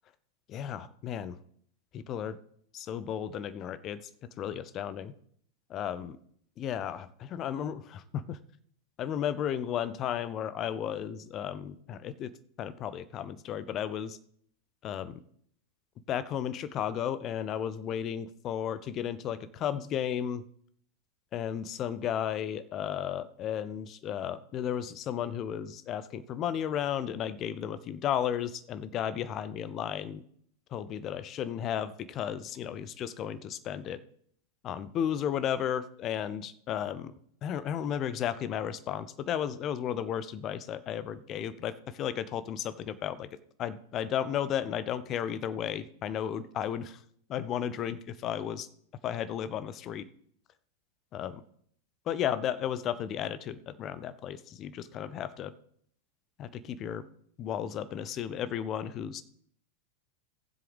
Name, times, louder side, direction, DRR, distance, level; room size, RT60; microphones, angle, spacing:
voice 1, 0.5-1.4 1.9-2.4 2.7-4.0 4.4-5.1 5.7-6.2 6.6-8.4 9.0-12.3 12.6-14.2 14.8-15.2 16.1-20.4 21.3-30.2 30.7-34.0 34.6-37.1 37.4-43.3 43.6-47.0 47.3-48.7 49.0-50.1 51.1-51.4 52.1-55.5 56.4-57.0 57.4-59.2, left 9 dB, 30° left, 15 dB, 0.6 m, -34 dB
16.5 x 7.7 x 3.4 m, 0.64 s
figure-of-eight pair, 90°, 0 cm